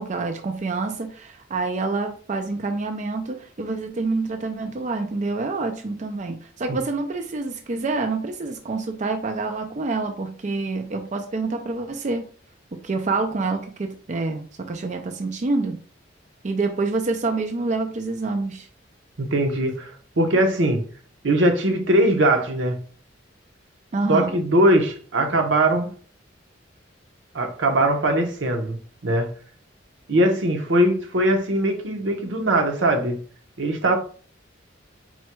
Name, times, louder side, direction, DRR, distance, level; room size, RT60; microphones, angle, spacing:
voice 1, 0.0-12.3 12.7-15.8 16.4-18.7 23.9-24.3, right 3 dB, 40° right, 0.4 m, -27 dB
voice 2, 19.2-20.8 21.2-22.8 24.1-25.9 27.3-28.8 29.0-29.3 30.1-33.2 33.6-34.0, right 1 dB, 85° right, 0.9 m, -21 dB
4.2 x 2.2 x 4.4 m
head